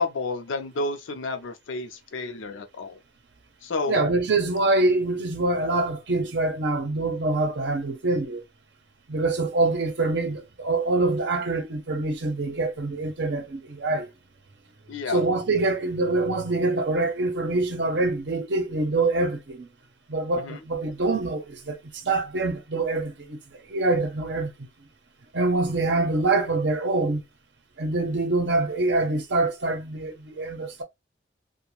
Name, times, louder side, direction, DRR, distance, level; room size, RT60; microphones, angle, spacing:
voice 1, 0.0-3.0 3.6-4.0 14.9-15.2 20.4-20.6, left 3 dB, 90° left, 0.5 m, -30 dB
voice 2, 3.9-8.4 9.1-14.1 15.1-19.7 20.1-23.4 23.7-24.5 25.3-27.2 27.8-30.8, right 2 dB, 60° right, 0.7 m, -25 dB
2.5 x 2.2 x 2.9 m
head